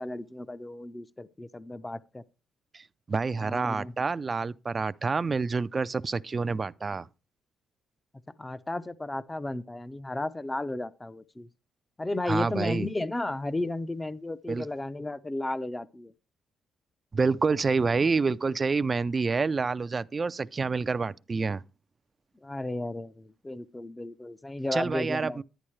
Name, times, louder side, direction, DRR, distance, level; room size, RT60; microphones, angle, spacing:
voice 1, 0.0-2.2 3.4-3.9 8.4-11.5 12.0-16.1 22.4-25.4, left 2 dB, 15° left, 0.6 m, -34 dB
voice 2, 2.7-7.1 12.3-12.9 14.5-14.7 17.1-21.6 24.7-25.4, right 4 dB, 30° right, 0.4 m, -28 dB
10.5 x 10.0 x 3.2 m
cardioid pair, 90°, 0 cm